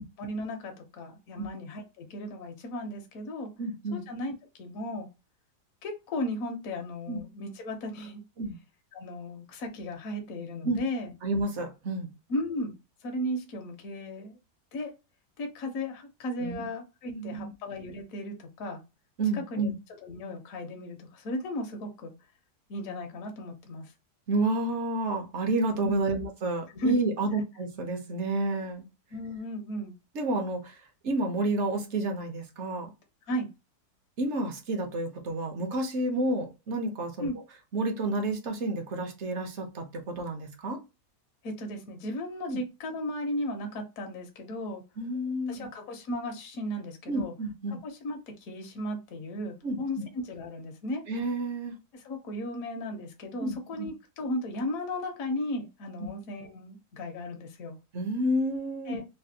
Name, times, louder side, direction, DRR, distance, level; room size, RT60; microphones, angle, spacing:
voice 1, 0.2-3.5 3.9-5.1 5.8-8.2 8.9-11.1 12.3-12.8 13.0-14.4 14.7-14.9 15.4-18.8 19.3-19.7 20.0-22.1 22.7-23.9 25.8-26.1 26.7-26.9 29.1-29.9 33.2-33.5 37.2-37.4 41.4-44.8 45.5-47.3 47.7-51.0 51.9-57.8 58.9-59.1, left 1 dB, 65° left, 1.0 m, -35 dB
voice 2, 3.6-4.1 7.1-7.2 8.4-8.6 10.6-10.8 11.2-12.1 16.4-16.7 17.1-17.5 19.2-19.7 24.3-28.8 30.1-30.8 31.0-32.9 34.2-37.3 37.7-40.8 42.5-42.6 45.0-45.7 47.1-47.8 49.6-49.8 51.1-51.7 53.4-53.9 56.0-56.1 57.9-59.0, right 2 dB, 60° right, 0.8 m, -30 dB
3.3 x 2.2 x 2.6 m
omnidirectional pair, 1.8 m